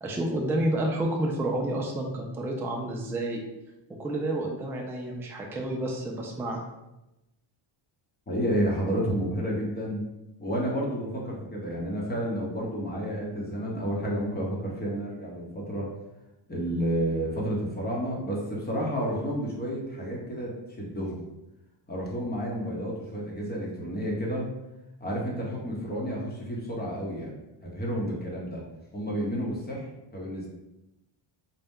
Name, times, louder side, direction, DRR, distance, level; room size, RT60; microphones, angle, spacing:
voice 1, 0.0-3.4 4.0-6.7, right 1 dB, 5° right, -1 dB, 0.3 m, -30 dB
voice 2, 8.3-10.1 10.4-15.9 16.5-21.2 21.9-24.5 25.0-27.3 27.6-28.6 28.9-29.9 30.1-30.5, equal, 20° left, -3 dB, 0.9 m, -30 dB
4.1 x 2.2 x 3.6 m, 0.94 s
cardioid pair, 135°, 49 cm